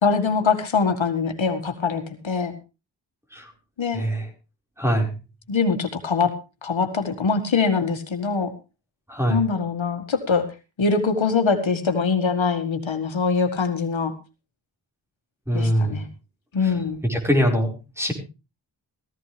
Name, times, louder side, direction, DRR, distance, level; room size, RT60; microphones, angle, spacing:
voice 1, 0.0-2.5 3.8-4.0 5.5-6.3 6.6-8.5 9.3-10.5 10.8-14.1 15.5-16.1 16.5-17.0, left 5 dB, 70° left, 6 dB, 2.0 m, -23 dB
voice 2, 3.9-4.3 4.8-5.1 9.1-9.4 15.5-16.0 16.6-16.7 17.0-18.1, equal, 5° right, 2 dB, 5.0 m, -23 dB
15.5 x 15.5 x 3.4 m, 0.30 s
cardioid pair, 55°, 48 cm